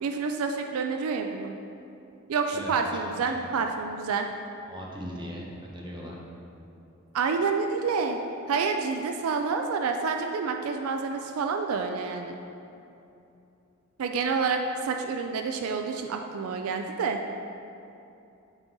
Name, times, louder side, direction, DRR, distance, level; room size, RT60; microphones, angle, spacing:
voice 1, 0.0-1.5 2.3-4.3 7.1-8.2 8.5-12.4 14.0-17.2, right 5 dB, 80° right, 5 dB, 0.4 m, -28 dB
voice 2, 2.5-3.6 4.6-6.2, equal, 20° right, -3 dB, 0.8 m, -39 dB
7.1 x 4.1 x 3.8 m, 2.7 s
head